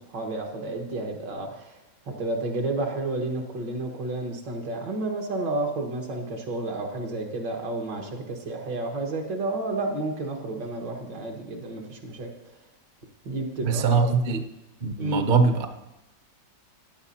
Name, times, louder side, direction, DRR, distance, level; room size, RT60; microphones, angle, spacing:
voice 1, 0.1-1.8 2.1-12.3 13.3-14.1 15.0-15.2, right 2 dB, 80° right, 1 dB, 2.2 m, -31 dB
voice 2, 13.6-14.4 14.8-15.7, right 4 dB, 50° right, 7 dB, 0.6 m, -22 dB
14.5 x 10.0 x 2.8 m, 0.99 s
omnidirectional pair, 1.9 m